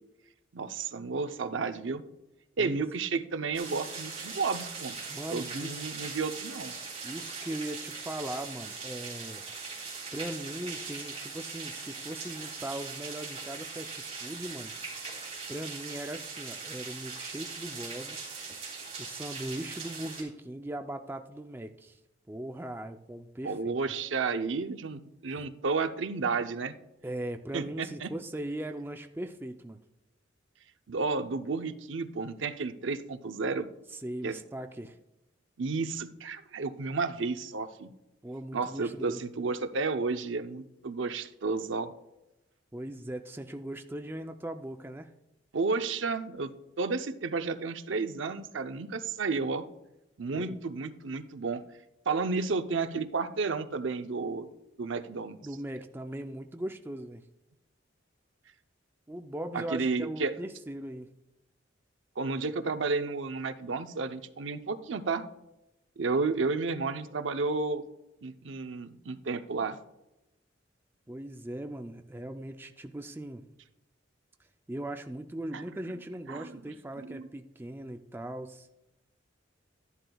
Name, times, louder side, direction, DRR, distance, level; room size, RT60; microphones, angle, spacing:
voice 1, 0.5-2.0 2.6-4.9 5.3-6.8 23.4-26.7 27.5-28.1 30.9-33.7 34.2-34.4 35.6-37.9 38.5-41.9 45.5-46.5 46.8-49.7 50.2-51.6 52.1-54.5 54.8-55.4 59.5-60.3 62.2-65.3 66.0-67.8 68.2-69.8 75.5-75.6 76.3-76.6 77.0-77.3, right 4 dB, 80° right, 9 dB, 0.7 m, -32 dB
sound 1, 3.5-20.2, right 4 dB, 30° right, 3.6 m, -40 dB
voice 2, 5.1-5.8 7.0-9.4 10.1-14.7 15.5-18.4 19.0-22.0 22.3-23.8 25.4-25.5 27.0-29.8 33.9-35.0 38.2-39.2 42.7-45.1 50.3-50.5 55.4-57.2 59.1-61.1 71.1-73.4 74.7-78.7, right 1 dB, 10° right, 6 dB, 0.4 m, -39 dB
13.0 x 11.0 x 2.3 m, 0.92 s
head